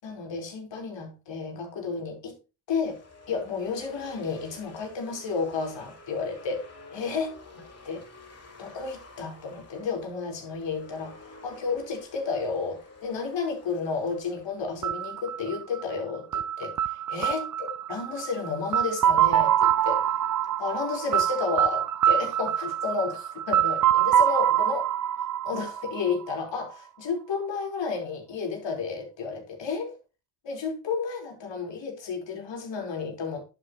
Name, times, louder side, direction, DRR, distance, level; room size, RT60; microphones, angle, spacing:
voice 1, 0.0-2.4 2.7-3.0 3.3-6.6 6.9-7.3 7.8-8.0 8.6-11.2 11.4-20.0 20.6-24.8 25.4-29.9 30.4-33.4, left 5 dB, 60° left, 4.8 m, -32 dB
sound 1, 2.8-15.9, left 3 dB, 30° left, 6.2 m, -50 dB
sound 2, 14.8-26.6, right 10 dB, 40° right, 0.7 m, -25 dB
11.0 x 9.1 x 3.2 m
supercardioid pair, 70°, 49 cm